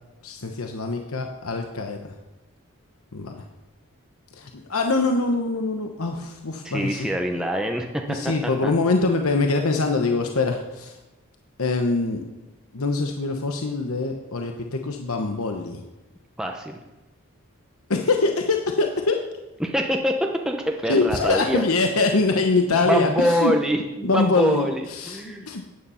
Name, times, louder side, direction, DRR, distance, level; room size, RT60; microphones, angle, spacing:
voice 1, 0.2-2.2 3.1-3.4 4.3-7.1 8.1-11.0 11.6-12.2 12.7-15.8 17.9-19.2 20.9-23.5 24.0-25.6, left 3 dB, 80° left, 4 dB, 1.0 m, -24 dB
voice 2, 6.6-8.2 8.4-8.7 16.4-16.8 19.6-21.6 22.9-25.5, equal, 5° right, 2 dB, 0.7 m, -25 dB
14.0 x 9.7 x 5.7 m, 1.1 s
head